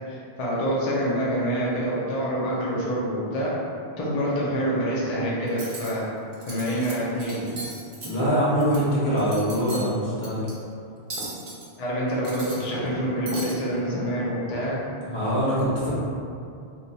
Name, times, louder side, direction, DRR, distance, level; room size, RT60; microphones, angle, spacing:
voice 1, 0.1-3.6 4.0-6.1 6.4-7.4 11.8-14.8, equal, 45° left, -6 dB, 0.5 m, -26 dB
Cutlery silverware, 5.5-5.9 6.3-6.9 7.2-8.8 9.1-9.9 10.2-10.5 11.1-11.7 12.1-13.0 13.3-13.5, right 2 dB, 60° right, 0.9 m, -36 dB
voice 2, 8.0-10.4 15.0-15.9, equal, 65° left, -8 dB, 1.2 m, -23 dB
2.9 x 2.2 x 3.9 m, 2.5 s
omnidirectional pair, 1.2 m